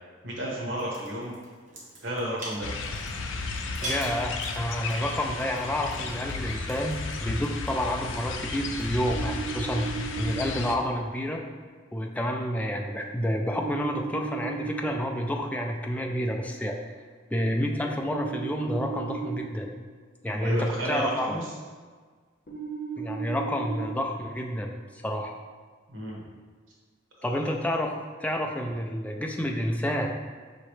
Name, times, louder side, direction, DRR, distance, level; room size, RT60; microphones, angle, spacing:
voice 1, 0.2-1.3 2.0-2.7 20.3-21.4 25.9-26.2, right 1 dB, 85° right, -4 dB, 1.1 m, -32 dB
sound 1, 0.7-9.1, right 1 dB, 40° right, 1.0 m, -44 dB
sound 2, 2.6-10.8, left 4 dB, 80° left, 0.4 m, -34 dB
voice 2, 3.8-9.9 10.2-11.4 11.9-16.8 17.3-19.7 20.2-21.5 23.0-24.7 25.0-25.3 27.2-27.9 28.2-30.1, equal, 10° left, 2 dB, 0.3 m, -29 dB
sound 3, 9.0-10.4 13.5-14.9 18.0-19.4 22.5-23.9, right 6 dB, 45° left, 0.9 m, -35 dB
5.2 x 2.9 x 3.1 m, 1.5 s
head